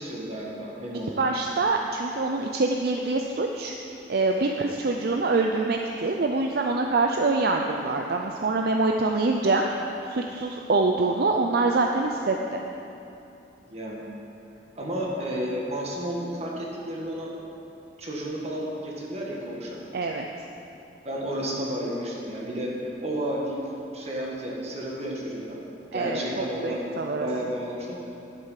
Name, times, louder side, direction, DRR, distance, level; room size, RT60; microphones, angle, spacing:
voice 1, 0.0-1.2 13.7-14.0 14.8-17.3 18.0-19.8 21.0-22.7 23.0-23.6 23.9-25.6 25.9-26.8 27.2-28.0, equal, 40° right, -3 dB, 1.9 m, -32 dB
voice 2, 1.2-3.7 4.1-9.6 10.1-12.6 19.9-20.3 25.9-27.3, right 3 dB, 60° right, 2 dB, 0.5 m, -25 dB
11.0 x 8.0 x 5.8 m, 2.8 s
head